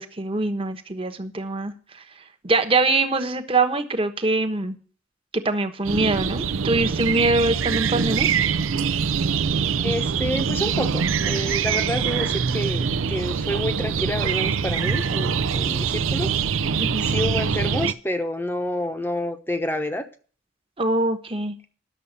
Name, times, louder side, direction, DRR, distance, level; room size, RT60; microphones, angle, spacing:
voice 1, 0.0-1.7 2.4-4.8 5.3-8.3 16.8-17.0 20.8-21.6, right 2 dB, 30° right, 8 dB, 1.1 m, -23 dB
sound 1, 5.8-17.9, right 6 dB, 85° right, 0.5 m, -24 dB
voice 2, 9.8-16.3 17.0-20.1, left 1 dB, 10° left, 8 dB, 0.9 m, -28 dB
11.0 x 6.9 x 6.8 m, 0.41 s
head